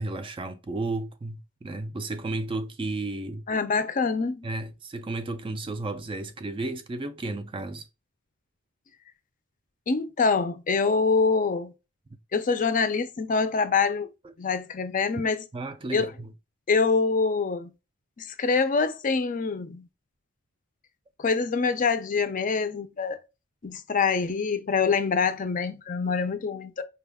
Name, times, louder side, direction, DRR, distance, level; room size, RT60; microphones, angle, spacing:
voice 1, 0.0-3.5 4.4-7.9 15.2-15.3 15.5-16.3, right 2 dB, 25° right, 0.3 m, -33 dB
voice 2, 3.5-4.5 9.9-11.7 12.3-14.1 14.4-15.5 15.9-16.1 16.7-17.7 18.2-19.9 21.2-23.2 23.6-26.8, left 4 dB, 35° left, 0.4 m, -25 dB
4.9 x 2.3 x 3.4 m
head